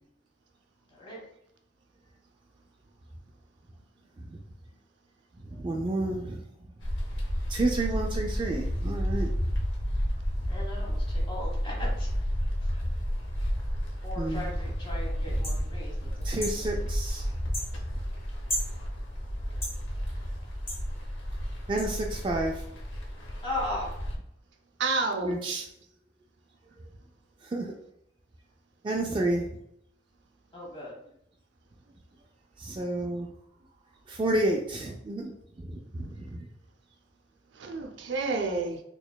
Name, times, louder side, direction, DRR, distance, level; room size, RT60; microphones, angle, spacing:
voice 1, 5.5-6.4 7.5-9.4 14.1-14.5 15.3-15.7 16.2-17.3 21.7-22.6 25.2-25.6 27.4-27.7 28.8-29.5 32.6-33.3 34.1-35.3 35.6-36.5, right 2 dB, 25° right, 0 dB, 0.3 m, -30 dB
sound 1, 6.8-24.2, equal, 85° left, 0.8 m, -31 dB
voice 2, 10.5-12.1 14.0-15.9 16.4-16.5 23.4-23.9 30.5-30.9, left 1 dB, 30° left, -3 dB, 1.2 m, -37 dB
sound 2, 15.4-15.6 16.4-16.6 17.5-17.7 18.5-18.7 19.6-19.8 20.7-20.8 21.8-21.9, left 1 dB, 15° left, 0.9 m, -33 dB
voice 3, 24.8-25.7 37.5-38.8, right 3 dB, 80° right, 4 dB, 0.5 m, -30 dB
4.1 x 2.9 x 2.2 m, 0.75 s
head